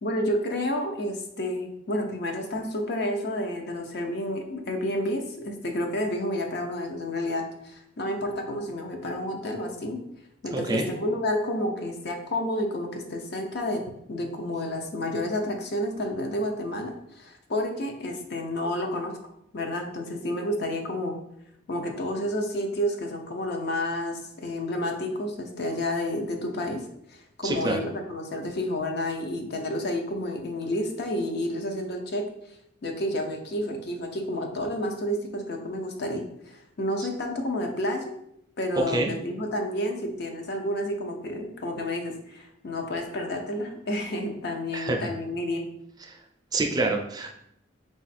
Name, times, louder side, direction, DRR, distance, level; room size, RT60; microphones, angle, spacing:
voice 1, 0.0-10.0 10.4-19.1 19.5-21.2 21.7-32.2 32.8-38.1 38.6-45.6, left 1 dB, 55° left, 3 dB, 0.6 m, -30 dB
voice 2, 10.5-10.9 27.4-27.8 38.9-39.1 44.7-45.1 46.5-47.3, right 2 dB, 20° right, 2 dB, 0.4 m, -26 dB
4.0 x 2.4 x 4.2 m, 0.76 s
head